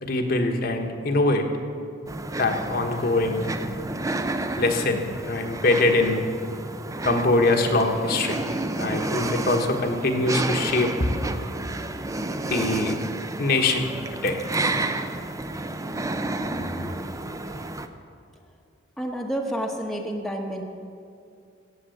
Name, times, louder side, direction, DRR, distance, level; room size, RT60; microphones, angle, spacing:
voice 1, 0.0-1.4 2.4-3.5 4.6-6.2 7.0-8.4 8.8-10.9 12.5-12.9 13.4-13.9 14.2-14.4, left 2 dB, 50° left, 3 dB, 1.3 m, -23 dB
sound 1, 2.1-17.9, right 2 dB, 15° right, 0.5 m, -31 dB
voice 2, 19.0-20.6, equal, ahead, 0 dB, 1.0 m, -29 dB
16.0 x 7.5 x 7.7 m, 2.5 s
head